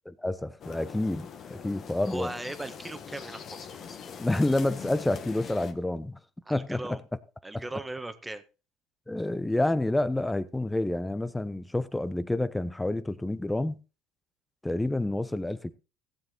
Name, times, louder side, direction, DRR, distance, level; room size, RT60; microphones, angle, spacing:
voice 1, 0.2-2.3 4.2-6.2 6.5-7.0 7.5-7.6 9.1-13.8 14.6-15.7, left 1 dB, 10° left, 0.9 m, -28 dB
sound 1, 0.6-5.7, left 7 dB, 50° left, 1.6 m, -43 dB
voice 2, 2.0-3.9 6.5-7.0 7.4-8.4, right 2 dB, 10° right, 1.6 m, -38 dB
15.5 x 7.4 x 4.1 m
supercardioid pair, 85°, 0 cm